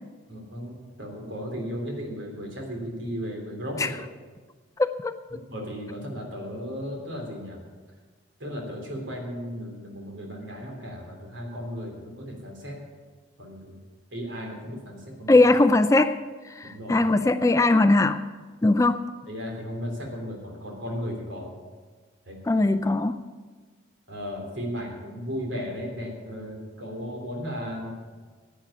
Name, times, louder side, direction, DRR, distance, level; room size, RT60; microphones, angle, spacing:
voice 1, 0.3-4.0 5.5-7.6 8.4-12.8 13.4-13.8 14.1-15.4 16.6-17.0 19.3-21.5 22.3-22.4 24.1-27.9, equal, 70° right, 1 dB, 3.4 m, -35 dB
voice 2, 4.8-5.1 15.3-16.2 16.6-18.2 18.6-19.0 22.5-23.2, left 2 dB, 15° left, 10 dB, 0.4 m, -20 dB
10.5 x 9.1 x 8.5 m, 1.4 s
head